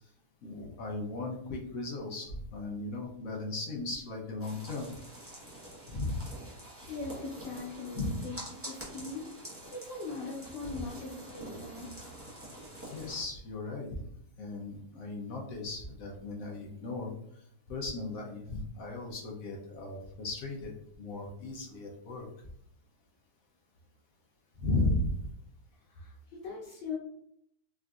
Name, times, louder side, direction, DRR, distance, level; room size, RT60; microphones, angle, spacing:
voice 1, 0.4-4.9 5.9-6.2 8.0-8.1 10.7-10.8 12.9-14.0 14.4-17.1 17.7-20.7 21.0-22.3 24.6-25.1, left 2 dB, 65° left, -1 dB, 1.0 m, -36 dB
sound 1, 4.4-13.2, right 1 dB, 15° right, 0.5 m, -47 dB
voice 2, 6.9-9.3 9.7-11.9 25.9-27.0, left 3 dB, 90° left, -5 dB, 1.4 m, -40 dB
3.7 x 2.5 x 2.3 m, 0.71 s
omnidirectional pair, 1.8 m